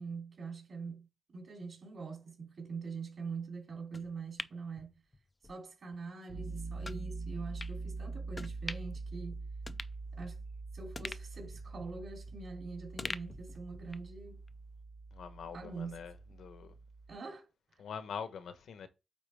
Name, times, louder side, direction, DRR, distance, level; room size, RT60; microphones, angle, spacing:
voice 1, 0.0-4.9 5.4-9.4 10.1-10.4 10.7-14.4 15.5-16.0 17.1-17.5, right 4 dB, 50° right, 3.1 m, -44 dB
sound 1, 3.9-5.5 5.9-6.0 6.8-7.0 7.6-7.8 8.3-9.0 9.3-9.4 9.7-10.5 10.9-12.5 13.0-14.1 14.5-14.6, left 2 dB, 15° left, 0.3 m, -45 dB
Piano, 6.3-17.1, right 3 dB, 80° right, 3.4 m, -44 dB
voice 2, 15.1-16.8 17.8-18.9, left 6 dB, 80° left, 1.0 m, -44 dB
8.7 x 4.0 x 3.4 m
wide cardioid pair, 180°, 0 cm